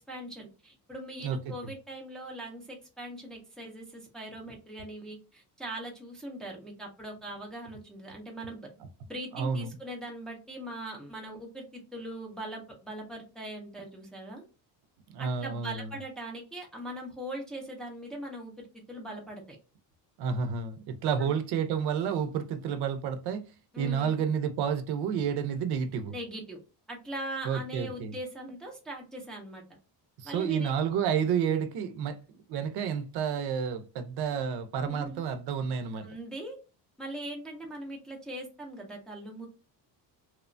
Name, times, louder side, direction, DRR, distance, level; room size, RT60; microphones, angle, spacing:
voice 1, 0.0-8.7 9.1-14.4 15.2-19.6 21.2-21.3 23.7-24.2 26.1-26.6 26.9-29.6 30.2-30.7 34.8-35.2 36.0-36.6 37.0-39.5, right 1 dB, ahead, 0.4 m, -41 dB
voice 2, 9.3-9.7 15.1-15.9 20.2-23.4 23.8-26.1 27.4-28.1 30.2-32.2 32.5-36.1, right 7 dB, 75° right, 0.5 m, -30 dB
2.9 x 2.1 x 2.4 m
cardioid pair, 170°, 39 cm